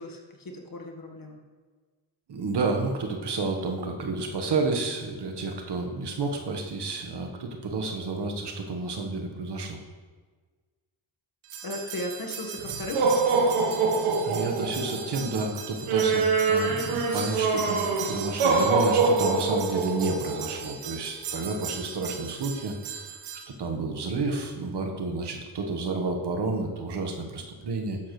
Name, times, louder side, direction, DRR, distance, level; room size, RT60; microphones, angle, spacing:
voice 1, 0.0-1.4 11.6-13.0, left 1 dB, 45° left, 2 dB, 1.7 m, -36 dB
voice 2, 2.3-9.8 14.2-23.2 23.6-28.0, right 3 dB, 55° right, 3 dB, 1.5 m, -30 dB
sound 1, 11.5-23.4, right 4 dB, 80° right, 1.4 m, -26 dB
11.0 x 7.2 x 3.2 m, 1.4 s
supercardioid pair, 55°, 48 cm